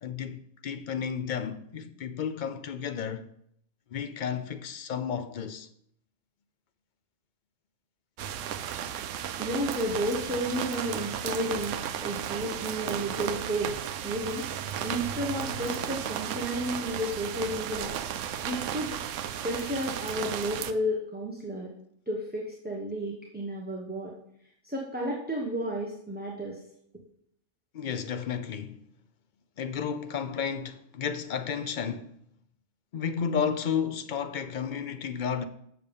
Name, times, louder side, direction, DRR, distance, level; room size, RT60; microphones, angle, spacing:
voice 1, 0.0-3.3 3.9-5.7 27.7-28.8 29.6-32.1 32.9-35.5, left 7 dB, 55° left, 0.6 m, -32 dB
sound 1, 8.2-20.7, right 9 dB, 80° right, 0.9 m, -34 dB
voice 2, 9.4-13.7 14.0-14.5 14.8-18.0 18.4-18.9 19.4-21.7 22.1-24.2 24.6-26.6, equal, 10° right, 1.0 m, -32 dB
7.2 x 6.7 x 5.3 m
omnidirectional pair, 1.3 m